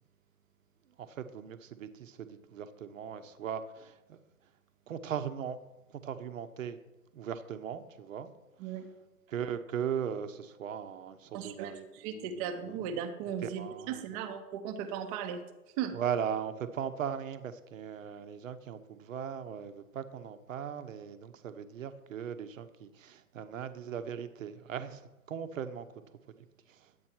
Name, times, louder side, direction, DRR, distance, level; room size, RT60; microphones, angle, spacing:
voice 1, 1.0-4.2 4.9-5.6 6.0-6.8 7.1-8.3 9.3-12.5 13.4-14.2 15.9-25.0 25.3-25.9 26.7-26.8, right 8 dB, 60° right, 1.0 m, -38 dB
voice 2, 11.3-15.4 15.8-15.9, right 8 dB, 25° right, 0.9 m, -37 dB
10.5 x 8.4 x 4.5 m
hypercardioid pair, 125°, 45 cm